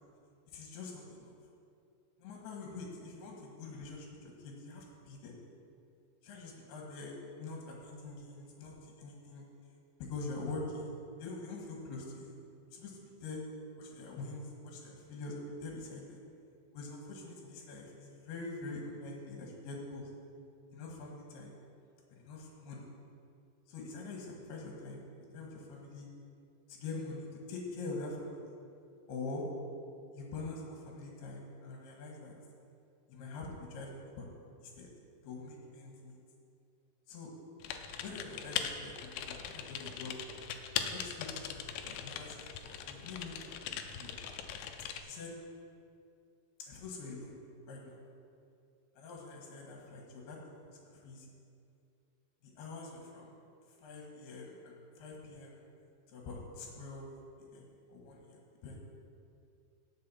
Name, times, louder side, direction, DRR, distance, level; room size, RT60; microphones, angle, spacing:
voice 1, 0.5-1.3 2.2-5.3 6.2-7.1 7.4-9.5 10.1-12.3 12.7-13.4 13.8-16.2 16.7-20.1 20.7-21.6 22.1-22.9 23.7-25.0 25.3-26.1 26.7-28.4 29.1-29.4 30.1-32.3 33.1-34.3 34.6-34.9 35.2-36.1 37.1-37.3 38.0-40.1 40.8-42.4 42.6-44.2 44.6-44.7 45.0-45.3 46.7-47.4 47.7-48.0 49.0-51.3 52.6-53.3 53.8-55.6 56.1-57.1 57.4-58.8, left 3 dB, 70° left, -1 dB, 3.2 m, -45 dB
Typing, 37.6-45.0, left 8 dB, 85° left, 2.7 m, -40 dB
18.0 x 6.6 x 4.2 m, 2.5 s
omnidirectional pair, 5.0 m